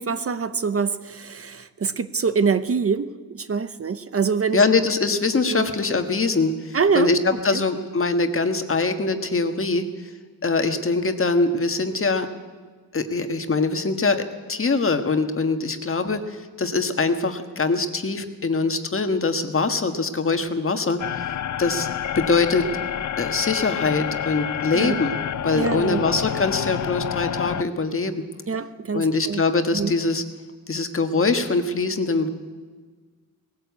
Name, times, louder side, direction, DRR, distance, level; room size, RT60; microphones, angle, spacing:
voice 1, 0.0-4.6 5.5-5.7 6.7-7.6 24.7-25.0 25.5-26.0 28.5-29.4 29.7-29.9, right 5 dB, 40° right, 12 dB, 0.8 m, -25 dB
voice 2, 4.5-9.8 10.4-12.3 12.9-21.0 21.6-21.9 22.1-22.7 23.2-28.2 28.9-30.2 30.7-32.3, left 3 dB, 40° left, 7 dB, 1.5 m, -23 dB
sound 1, 21.0-27.6, left 9 dB, 55° left, 0.6 m, -28 dB
19.0 x 16.5 x 8.4 m, 1.4 s
wide cardioid pair, 135°, 34 cm